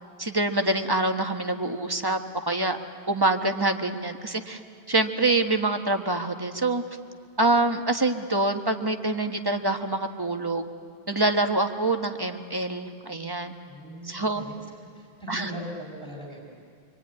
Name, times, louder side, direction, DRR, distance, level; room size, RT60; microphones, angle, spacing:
voice 1, 0.2-2.2 2.5-2.8 3.1-4.6 4.9-6.8 7.4-10.7 11.1-13.5 14.0-14.4 15.3-15.5, right 2 dB, 25° right, 5 dB, 1.3 m, -25 dB
voice 2, 13.7-14.6 14.9-16.4, equal, 20° left, -3 dB, 5.0 m, -39 dB
25.0 x 24.0 x 9.7 m, 2.3 s
omnidirectional pair, 1.0 m